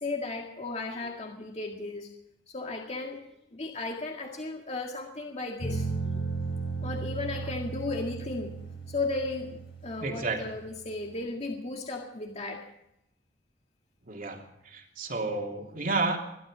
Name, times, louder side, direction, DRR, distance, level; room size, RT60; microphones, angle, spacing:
voice 1, 0.0-2.1 2.5-3.2 3.5-6.3 6.8-8.5 8.9-12.6, left 3 dB, 35° left, 1 dB, 1.9 m, -35 dB
sound 1, 5.6-11.1, right 4 dB, 65° left, 5.9 m, -36 dB
voice 2, 10.0-10.4 14.1-16.2, right 3 dB, 45° right, 2 dB, 3.1 m, -31 dB
21.5 x 12.5 x 5.0 m, 0.81 s
head